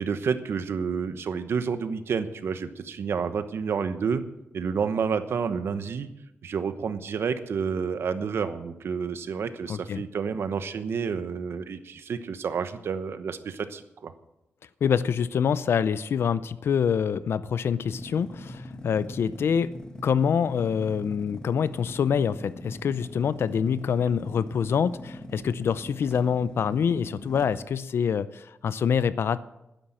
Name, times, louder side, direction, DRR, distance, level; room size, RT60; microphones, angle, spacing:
voice 1, 0.0-4.2 4.5-6.1 6.4-14.1, right 6 dB, 70° right, 10 dB, 1.0 m, -29 dB
voice 2, 9.7-10.0 14.8-19.7 20.0-29.4, left 7 dB, 65° left, 15 dB, 0.5 m, -26 dB
sound 1, 17.9-27.7, left 1 dB, 15° left, 1.3 m, -42 dB
12.0 x 10.5 x 7.4 m, 0.91 s
wide cardioid pair, 165°, 4 cm